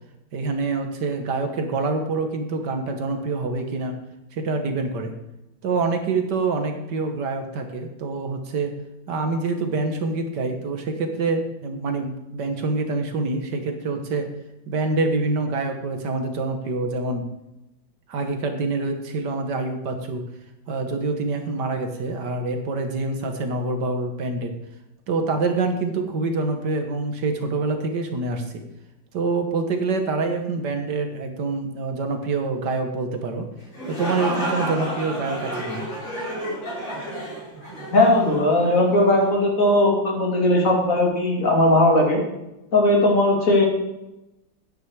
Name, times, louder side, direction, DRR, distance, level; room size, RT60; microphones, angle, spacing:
voice 1, 0.3-4.0 4.3-5.1 5.6-8.7 9.1-14.3 14.7-17.2 18.1-20.2 20.7-24.5 25.1-28.6 29.1-33.5 33.9-35.9, right 3 dB, 60° right, 5 dB, 1.8 m, -26 dB
sound 1, 33.6-39.3, right 1 dB, 90° left, 4.6 m, -31 dB
voice 2, 37.9-42.2 42.7-43.7, left 1 dB, 40° left, -1 dB, 3.0 m, -18 dB
9.7 x 9.4 x 4.7 m, 0.93 s
omnidirectional pair, 2.1 m